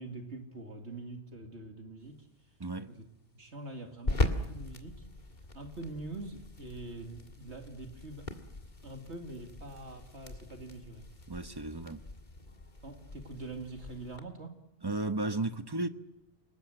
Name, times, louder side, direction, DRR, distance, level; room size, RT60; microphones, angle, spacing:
voice 1, 0.0-2.3 2.9-3.1 3.3-5.1 5.5-8.3 8.8-11.1 12.8-14.6, right 2 dB, 75° right, 2.5 m, -44 dB
sound 1, 2.0-14.2, left 2 dB, 40° left, 2.1 m, -40 dB
voice 2, 2.6-2.9 11.3-12.0 14.8-15.9, right 2 dB, 20° right, 1.0 m, -34 dB
28.5 x 19.5 x 7.7 m
omnidirectional pair, 1.2 m